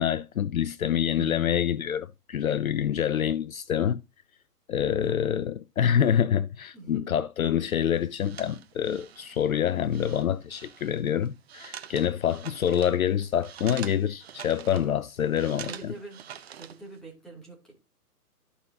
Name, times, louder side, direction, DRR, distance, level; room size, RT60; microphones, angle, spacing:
voice 1, 0.0-4.0 4.7-15.9, left 9 dB, 60° left, 0.6 m, -26 dB
voice 2, 1.1-1.5 2.9-3.2 4.8-5.4 6.7-7.2 15.6-16.2 16.6-17.8, right 3 dB, ahead, 2.7 m, -44 dB
sound 1, 7.7-17.0, right 9 dB, 40° right, 0.8 m, -46 dB
13.5 x 5.5 x 2.8 m
figure-of-eight pair, 135°, 47 cm